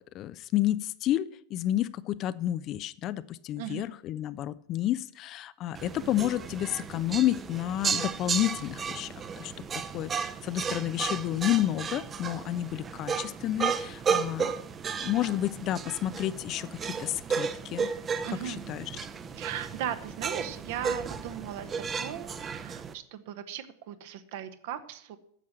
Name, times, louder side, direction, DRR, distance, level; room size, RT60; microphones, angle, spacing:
voice 1, 0.0-9.5 9.9-14.5 15.0-17.9 18.4-18.9, left 13 dB, 35° left, 16 dB, 0.5 m, -30 dB
sound 1, 5.7-22.9, right 6 dB, 20° right, 0.8 m, -34 dB
voice 2, 18.2-18.7 19.3-25.2, right 10 dB, 50° right, 10 dB, 1.1 m, -38 dB
10.0 x 7.3 x 7.8 m, 0.69 s
figure-of-eight pair, 90°, 0 cm